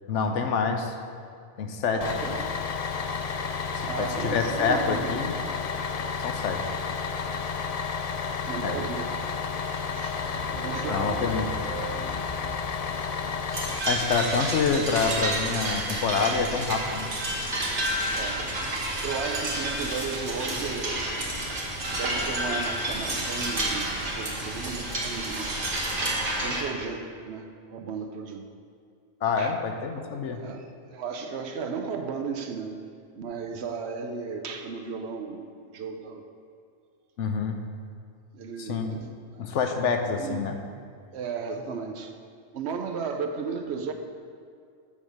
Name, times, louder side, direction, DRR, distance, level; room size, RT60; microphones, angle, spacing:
voice 1, 0.1-0.9 1.6-2.0 3.7-5.3 6.2-6.7 8.6-8.8 10.9-11.5 13.9-17.1 29.2-30.4 37.2-37.6 38.6-38.9 39.4-40.6, left 5 dB, 90° left, 5 dB, 1.1 m, -27 dB
voice 2, 1.9-2.6 3.8-5.2 8.5-9.1 9.7-11.3 18.1-18.5 18.7-21.1 21.9-25.6 26.4-28.5 29.4-29.6 30.3-32.8 33.1-35.4 35.7-36.3 38.3-39.5 40.2-40.4 41.1-42.2 42.5-43.9, right 5 dB, 70° right, 5 dB, 0.9 m, -35 dB
Bus, 2.0-13.8, left 5 dB, 70° left, 0.3 m, -31 dB
sound 1, 10.2-13.5, right 2 dB, ahead, 1.5 m, -39 dB
sound 2, 13.5-26.6, right 1 dB, 50° right, 1.4 m, -30 dB
7.1 x 5.2 x 6.4 m, 2.3 s
omnidirectional pair, 1.2 m